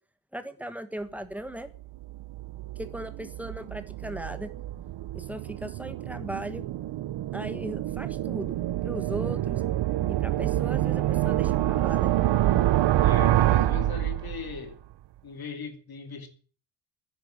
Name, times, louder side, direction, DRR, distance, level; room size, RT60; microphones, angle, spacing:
voice 1, 0.3-1.7 2.8-4.5 5.1-6.6 7.3-8.6 8.8-9.6 10.1-12.1, right 1 dB, 5° right, 1.4 m, -38 dB
sound 1, 1.7-14.7, right 14 dB, 70° right, 0.7 m, -27 dB
voice 2, 13.0-14.8 15.2-16.3, left 6 dB, 50° left, 2.7 m, -38 dB
10.5 x 10.5 x 8.7 m
wide cardioid pair, 160°, 45 cm